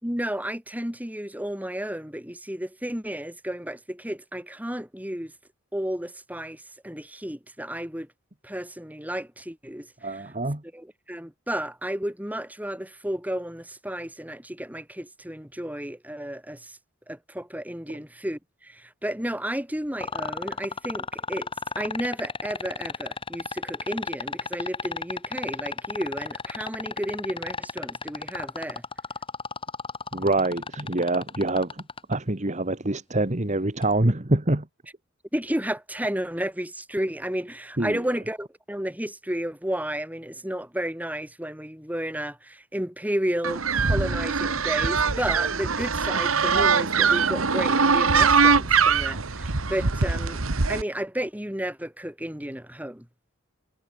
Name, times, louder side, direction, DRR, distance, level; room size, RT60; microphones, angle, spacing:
voice 1, 0.0-5.3 5.7-8.1 8.4-9.9 10.7-16.8 17.1-21.5 21.8-28.8 35.3-50.4 50.7-53.1, equal, 10° right, 5.0 m, -32 dB
voice 2, 10.0-10.6 30.1-31.8 32.1-34.7 37.8-38.0, right 2 dB, 35° right, 1.7 m, -25 dB
sound 1, 20.0-32.1 33.8-33.9, left 4 dB, 25° left, 3.1 m, -32 dB
sound 2, 43.4-50.8, right 5 dB, 85° right, 1.6 m, -22 dB
head